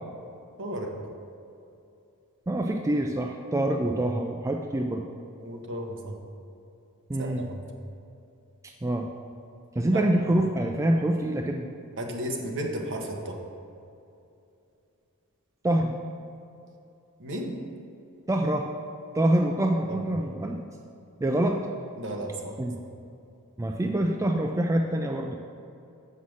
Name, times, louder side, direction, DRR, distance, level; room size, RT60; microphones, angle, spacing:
voice 1, 0.6-1.0 5.4-6.2 7.2-7.6 9.9-10.1 12.0-13.4 17.2-17.6 19.9-20.0 22.0-22.6, right 1 dB, 60° right, 2 dB, 1.1 m, -34 dB
voice 2, 2.5-5.0 7.1-7.5 8.6-9.1 9.8-11.7 15.6-15.9 18.3-18.7 19.1-20.6 21.2-21.7 22.6-22.8 23.6-25.4, right 1 dB, 15° right, 2 dB, 0.4 m, -25 dB
7.4 x 5.5 x 6.3 m, 2.7 s
head